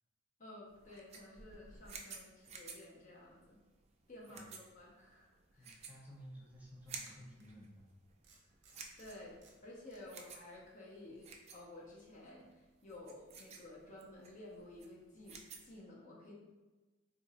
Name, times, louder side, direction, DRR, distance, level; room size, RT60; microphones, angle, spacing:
voice 1, 0.4-3.6 4.1-5.8 9.0-16.3, left 1 dB, 45° left, -4 dB, 0.7 m, -53 dB
sound 1, 0.7-15.8, right 5 dB, 35° right, 0.4 m, -54 dB
voice 2, 5.6-7.9, equal, 10° right, -5 dB, 0.8 m, -54 dB
sound 2, 5.6-5.7 7.0-7.5 8.2-10.0, right 4 dB, 65° right, 0.7 m, -65 dB
3.9 x 2.6 x 2.6 m, 1.2 s
head